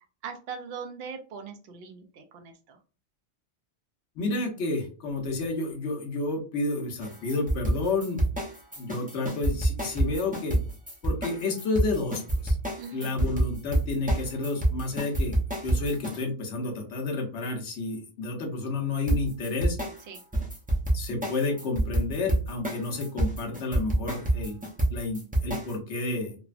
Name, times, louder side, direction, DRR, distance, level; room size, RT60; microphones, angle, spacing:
voice 1, 0.2-2.8 12.8-13.2 20.1-20.2, right 6 dB, 65° right, 6 dB, 0.7 m, -40 dB
voice 2, 4.2-8.2 8.8-10.6 11.0-12.6 12.9-19.8 20.9-24.6 24.9-26.4, left 3 dB, 70° left, 2 dB, 1.0 m, -30 dB
sound 1, 7.0-16.2 19.1-25.7, right 1 dB, 10° right, 0.4 m, -27 dB
3.2 x 2.1 x 2.4 m, 0.37 s
omnidirectional pair, 1.2 m